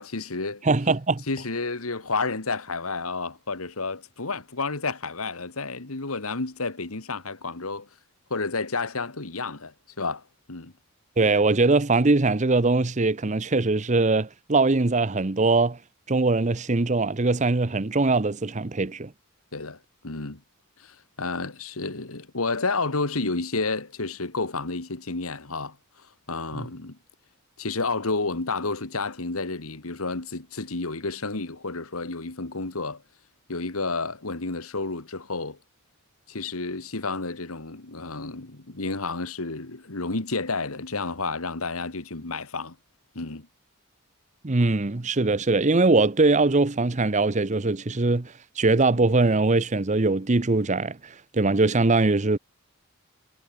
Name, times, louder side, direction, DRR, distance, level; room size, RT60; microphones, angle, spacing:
voice 1, 0.0-0.6 1.3-7.9 8.3-10.2 10.5-10.7 19.5-19.8 20.0-20.4 20.8-25.8 26.3-27.0 27.6-33.0 33.5-35.6 36.3-42.8 43.2-43.5, left 3 dB, 80° left, 2.0 m, -30 dB
voice 2, 0.6-1.2 11.2-15.8 16.1-19.1 26.5-26.7 44.4-52.4, right 3 dB, 35° right, 0.8 m, -22 dB
head